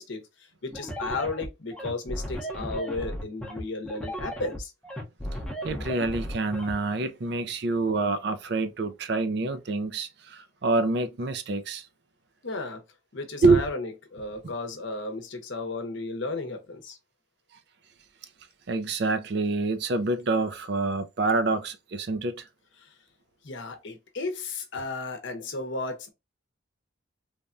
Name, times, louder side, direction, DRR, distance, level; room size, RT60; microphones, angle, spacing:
voice 1, 0.0-4.7 12.4-12.8 13.1-17.0 22.8-22.9 23.4-26.1, left 3 dB, 70° left, 0.8 m, -34 dB
sound 1, 0.7-6.7, equal, 5° left, 0.6 m, -35 dB
voice 2, 5.6-11.8 13.4-13.6 18.7-22.4, right 3 dB, 55° right, 0.4 m, -26 dB
3.3 x 2.2 x 2.5 m
head